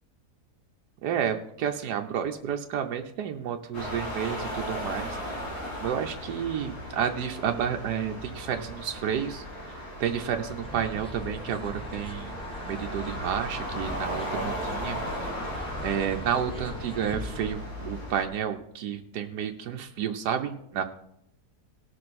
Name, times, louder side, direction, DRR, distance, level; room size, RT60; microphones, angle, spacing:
voice 1, 1.0-5.4 5.8-15.0 15.8-20.8, right 8 dB, 85° right, 5 dB, 1.3 m, -31 dB
sound 1, 3.7-18.2, equal, 70° left, 3.6 m, -36 dB
sound 2, 10.6-17.5, left 1 dB, 5° left, 0.8 m, -41 dB
18.5 x 6.6 x 4.2 m, 0.76 s
omnidirectional pair, 1.7 m